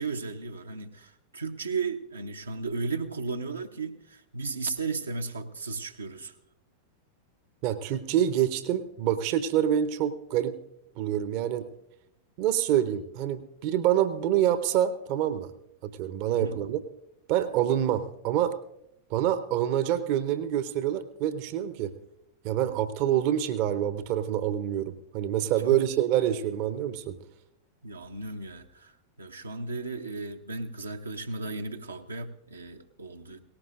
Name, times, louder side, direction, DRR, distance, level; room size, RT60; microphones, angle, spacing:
voice 1, 0.0-6.3 16.3-16.6 25.7-25.8 27.8-33.4, right 4 dB, 80° right, 4 dB, 0.8 m, -35 dB
voice 2, 7.6-10.5 11.0-11.7 12.4-15.5 15.8-16.8 17.3-18.5 19.1-21.9 22.4-27.2, right 11 dB, 45° right, 12 dB, 0.7 m, -26 dB
18.5 x 17.5 x 2.5 m, 0.81 s
figure-of-eight pair, 90°, 0 cm